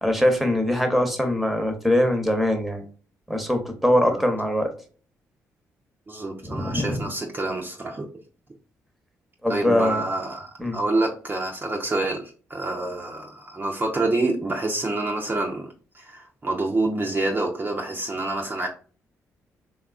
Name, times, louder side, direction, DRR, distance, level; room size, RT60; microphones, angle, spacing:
voice 1, 0.0-2.8 3.3-4.7 6.4-7.0 9.4-10.0 10.6-10.8, left 1 dB, ahead, 0.8 m, -22 dB
voice 2, 6.1-8.1 9.5-18.7, right 2 dB, 30° right, 0.5 m, -27 dB
3.3 x 2.3 x 2.4 m
hypercardioid pair, 40°, 7 cm